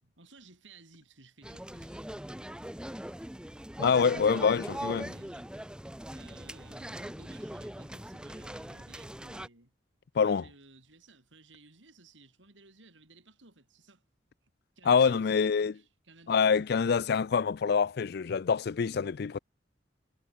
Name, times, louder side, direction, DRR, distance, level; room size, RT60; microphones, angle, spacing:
voice 1, 0.0-2.0 3.2-3.3 4.0-5.5 6.1-9.7 10.1-14.0 14.8-17.0, right 3 dB, 90° right, 6.0 m, -57 dB
sound 1, 1.4-9.5, equal, 5° right, 1.0 m, -41 dB
voice 2, 3.8-5.1 10.2-10.4 14.9-15.7 16.3-19.4, left 6 dB, 60° left, 0.4 m, -26 dB
head